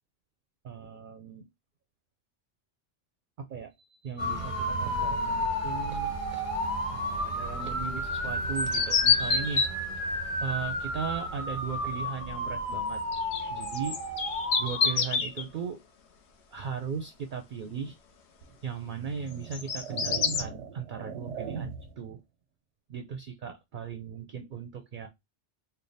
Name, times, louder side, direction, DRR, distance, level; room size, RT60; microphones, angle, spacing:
voice 1, 0.6-1.5 3.4-9.6 10.4-13.0 13.5-14.0 14.6-15.8 16.5-18.0 18.6-22.2 22.9-25.1, right 6 dB, 60° right, 0.5 m, -37 dB
sound 1, 4.2-15.0, equal, 30° left, 1.2 m, -32 dB
sound 2, 8.6-9.7 13.1-15.4 19.3-20.4, left 6 dB, 70° left, 1.0 m, -27 dB
sound 3, 18.4-18.6 19.3-22.1, right 6 dB, 90° right, 0.9 m, -39 dB
3.4 x 2.2 x 3.9 m
omnidirectional pair, 1.2 m